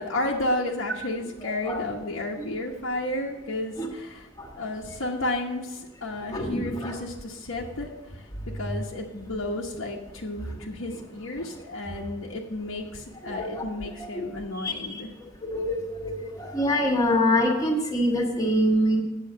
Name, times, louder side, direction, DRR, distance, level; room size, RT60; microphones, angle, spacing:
voice 1, 0.0-4.3 4.6-7.9 8.1-8.3 8.5-15.1, left 1 dB, 80° left, -2 dB, 1.1 m, -32 dB
voice 2, 1.4-1.8 2.4-2.5 3.8-3.9 4.4-4.5 6.3-6.9 13.2-13.6 14.0-14.3 14.6-15.0 15.5-19.0, equal, 15° left, 2 dB, 1.4 m, -25 dB
8.7 x 6.8 x 6.6 m, 1.1 s
head